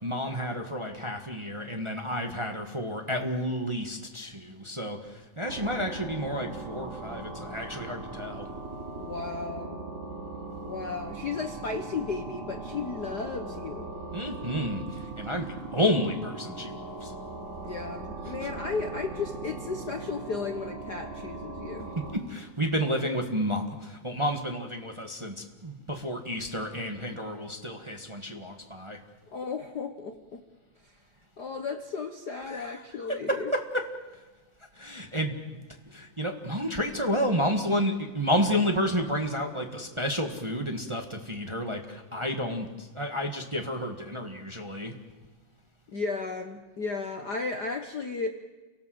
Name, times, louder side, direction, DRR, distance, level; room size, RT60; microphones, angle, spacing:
voice 1, 0.0-5.0 5.4-8.5 14.1-14.8 15.2-17.1 22.1-29.0 32.5-32.7 33.3-33.8 34.8-35.3 35.9-44.9, equal, 25° right, 3 dB, 0.7 m, -30 dB
sound 1, 5.4-22.1, right 3 dB, 70° right, 4.9 m, -39 dB
voice 2, 9.0-9.8 10.6-13.9 17.6-21.9 29.3-30.4 30.8-31.0 31.4-33.5 45.9-48.3, left 4 dB, 70° left, 6 dB, 0.9 m, -34 dB
29.0 x 18.0 x 7.8 m, 1.3 s
omnidirectional pair, 3.6 m